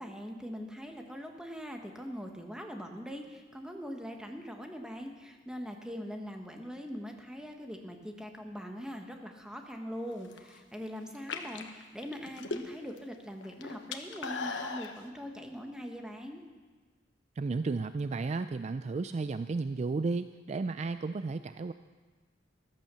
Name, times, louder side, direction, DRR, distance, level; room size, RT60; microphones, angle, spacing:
voice 1, 0.0-16.4, equal, 5° right, 3 dB, 1.4 m, -42 dB
sound 1, 10.1-10.6 11.1-13.0 13.3-14.9, left 4 dB, 80° left, 1.2 m, -38 dB
voice 2, 17.4-21.7, right 3 dB, 40° right, 11 dB, 0.4 m, -33 dB
14.5 x 12.0 x 6.9 m, 1.4 s
head